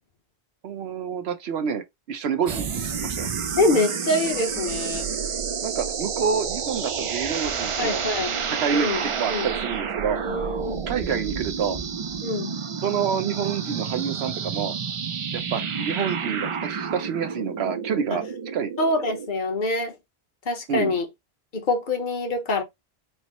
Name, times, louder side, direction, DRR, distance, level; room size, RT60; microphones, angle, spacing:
voice 1, 0.6-3.3 5.6-8.0 8.6-10.2 10.9-11.8 12.8-14.7 15.3-18.2 18.5-18.7 20.7-20.9, right 7 dB, 75° right, 1.0 m, -28 dB
sound 1, 2.5-19.3, right 6 dB, 55° right, 0.3 m, -30 dB
voice 2, 3.6-5.1 7.8-8.4 8.7-9.0 9.3-9.5 10.2-10.8 12.2-12.6 18.1-18.2 18.8-19.9 20.5-21.1 21.5-22.6, left 2 dB, 50° left, 1.1 m, -25 dB
4.4 x 2.1 x 4.0 m
omnidirectional pair, 1.1 m